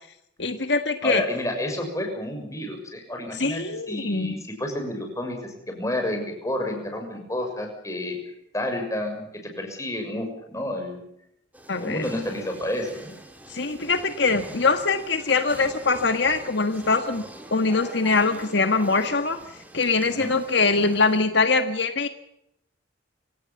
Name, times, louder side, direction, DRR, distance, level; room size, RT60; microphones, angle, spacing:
voice 1, 0.4-1.2 3.4-4.4 11.7-12.0 13.5-17.2 17.5-19.4 19.7-22.1, left 4 dB, 65° left, 8 dB, 1.6 m, -23 dB
voice 2, 1.0-11.0 11.8-13.1 14.5-14.6 20.1-20.4, left 1 dB, 15° left, 3 dB, 6.7 m, -30 dB
sound 1, 11.5-21.3, right 1 dB, 10° right, 3.5 m, -44 dB
27.5 x 18.0 x 7.2 m, 0.79 s
head